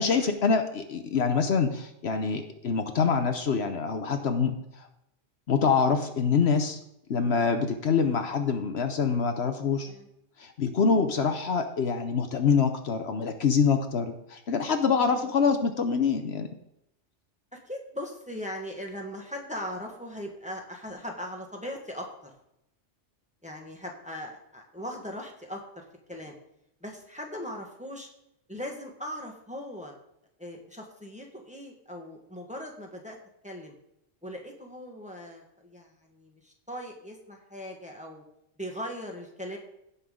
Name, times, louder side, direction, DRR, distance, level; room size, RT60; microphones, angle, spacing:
voice 1, 0.0-4.9 5.5-6.8 7.1-9.9 10.4-16.5, left 5 dB, 65° left, 7 dB, 1.1 m, -25 dB
voice 2, 17.5-22.3 23.4-26.3 26.8-28.1 28.5-29.9 30.4-33.2 33.4-33.7 34.2-38.2 38.6-39.6, equal, 5° right, 0 dB, 1.4 m, -39 dB
16.5 x 5.7 x 3.8 m, 0.81 s
omnidirectional pair, 1.2 m